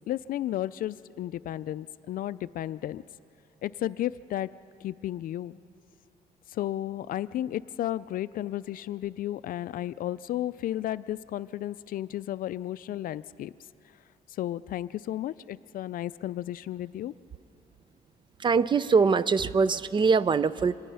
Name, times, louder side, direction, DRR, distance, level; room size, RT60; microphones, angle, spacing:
voice 1, 0.0-3.0 3.6-4.5 4.8-5.6 6.5-13.5 14.4-17.1, left 13 dB, 60° left, 16 dB, 0.4 m, -33 dB
voice 2, 18.4-20.8, right 5 dB, 30° right, 17 dB, 0.4 m, -23 dB
25.0 x 19.5 x 5.6 m, 2.8 s
cardioid pair, 125°, 17 cm